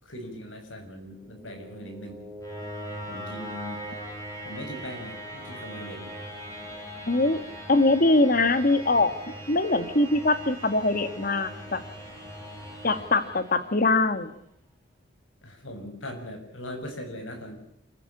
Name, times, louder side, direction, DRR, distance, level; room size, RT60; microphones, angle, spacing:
voice 1, 0.0-2.2 3.1-3.8 4.4-6.1 15.4-17.5, left 1 dB, 90° left, 5 dB, 6.6 m, -40 dB
sound 1, 1.1-14.1, equal, 15° left, 7.2 m, -40 dB
voice 2, 7.1-7.4 7.7-9.1 9.5-11.8 12.8-14.3, left 2 dB, 50° left, 11 dB, 1.7 m, -22 dB
27.5 x 14.5 x 8.7 m, 0.74 s
head